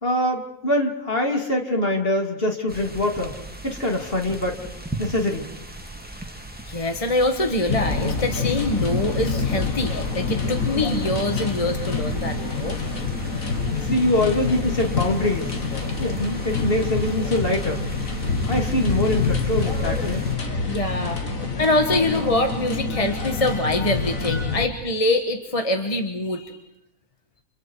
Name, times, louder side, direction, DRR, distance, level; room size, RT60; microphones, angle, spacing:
voice 1, 0.0-3.4 3.6-4.6 5.0-5.5 13.8-15.5 16.0-17.9 18.4-20.2, left 1 dB, 45° left, 3 dB, 3.1 m, -24 dB
sound 1, 2.7-20.4, right 1 dB, 5° right, 2.1 m, -39 dB
voice 2, 6.7-12.8 20.7-21.2 21.6-26.6, left 2 dB, 25° left, 5 dB, 1.5 m, -24 dB
sound 2, 7.7-24.7, left 4 dB, 90° left, 2.5 m, -26 dB
30.0 x 27.0 x 4.8 m, 0.84 s
omnidirectional pair, 1.4 m